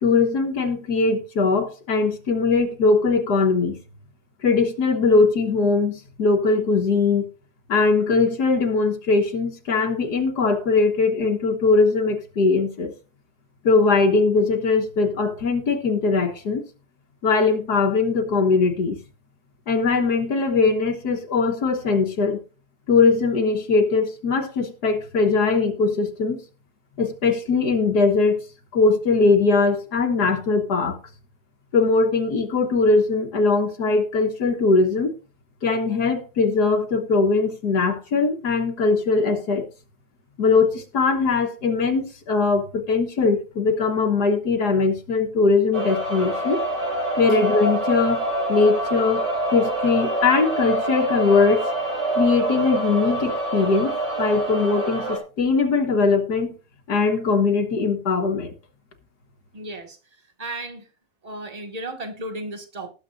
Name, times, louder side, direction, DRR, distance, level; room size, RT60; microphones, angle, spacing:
voice 1, 0.0-3.8 4.4-7.3 7.7-12.9 13.6-16.6 17.2-19.0 19.7-22.4 22.9-26.4 27.0-28.4 28.7-31.0 31.7-35.1 35.6-39.6 40.4-46.6 47.2-49.3 49.5-51.7 52.1-53.9 54.2-56.5 56.9-58.5, left 4 dB, 70° left, 2.0 m, -20 dB
sound 1, 45.7-55.2, right 2 dB, 90° right, 4.2 m, -26 dB
voice 2, 59.5-60.0 60.4-60.8 61.2-62.9, right 2 dB, 20° right, 1.9 m, -34 dB
19.5 x 7.7 x 2.6 m
omnidirectional pair, 1.8 m